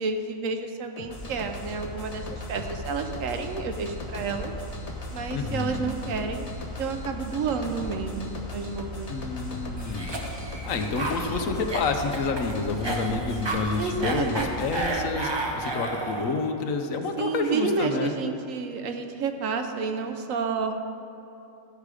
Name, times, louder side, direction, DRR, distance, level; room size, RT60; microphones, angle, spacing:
voice 1, 0.0-4.5 5.1-6.5 6.8-9.1 13.8-14.5 17.2-20.8, right 5 dB, 75° right, 5 dB, 1.1 m, -30 dB
sound 1, 1.0-14.9, left 1 dB, 30° left, 1.0 m, -37 dB
voice 2, 5.3-6.0 9.1-10.1 10.6-18.1, left 4 dB, 75° left, 5 dB, 1.1 m, -29 dB
Cough, 9.8-16.4, right 2 dB, 25° right, 0.7 m, -32 dB
13.0 x 5.0 x 4.9 m, 2.9 s
omnidirectional pair, 1.4 m